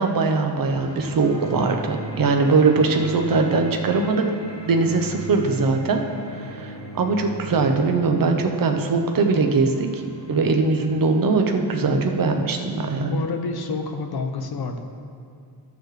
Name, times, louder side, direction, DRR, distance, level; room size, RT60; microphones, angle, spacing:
voice 1, 0.0-4.3 4.6-6.0 6.3-10.0 10.3-13.2, right 4 dB, 50° right, 4 dB, 0.8 m, -21 dB
sound 1, 0.7-12.1, right 1 dB, 35° left, 1.5 m, -38 dB
voice 2, 13.1-14.8, left 4 dB, 60° left, 6 dB, 0.8 m, -28 dB
13.0 x 6.7 x 3.2 m, 2.4 s
wide cardioid pair, 135°, 42 cm